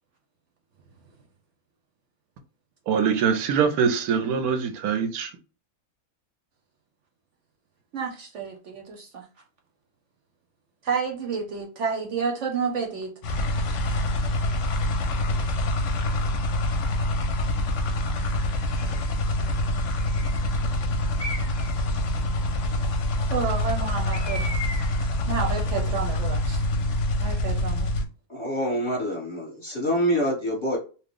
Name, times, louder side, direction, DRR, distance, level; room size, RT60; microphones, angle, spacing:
voice 1, 2.9-5.3, right 6 dB, 85° right, 1.1 m, -23 dB
voice 2, 7.9-9.3 10.8-13.1 14.5-15.3 22.5-22.6 23.3-24.5 25.3-26.6 27.2-27.9, right 5 dB, 65° right, 0.9 m, -30 dB
sound 1, 13.2-28.1, left 1 dB, 65° left, 0.8 m, -26 dB
Bird, 18.8-19.2 20.0-20.5 21.2-21.8 24.1-25.1, left 2 dB, 45° left, 0.3 m, -37 dB
voice 3, 28.3-30.8, equal, 25° left, 0.9 m, -26 dB
2.9 x 2.1 x 3.6 m
omnidirectional pair, 1.5 m